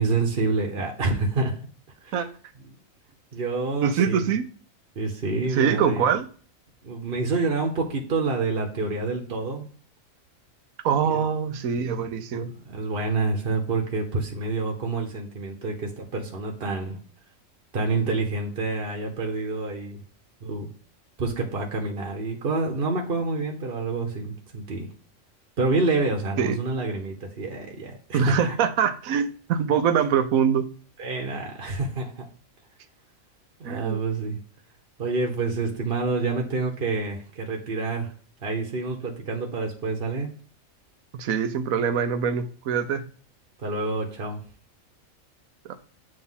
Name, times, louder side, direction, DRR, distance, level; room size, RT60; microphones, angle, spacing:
voice 1, 0.0-1.5 2.0-2.2 3.3-4.3 5.0-6.1 6.8-9.7 11.1-11.2 12.3-17.0 17.7-20.0 20.4-20.7 21.2-24.9 25.6-28.5 31.0-32.3 33.6-34.4 35.0-38.1 38.4-40.3 43.6-44.4, right 3 dB, 50° right, 1 dB, 1.0 m, -27 dB
voice 2, 3.8-4.4 5.5-6.2 10.8-12.5 26.4-26.6 28.1-30.7 33.6-34.0 41.1-43.0 45.6-45.8, right 7 dB, 85° right, 9 dB, 1.1 m, -24 dB
7.7 x 2.8 x 5.5 m, 0.43 s
omnidirectional pair, 1.4 m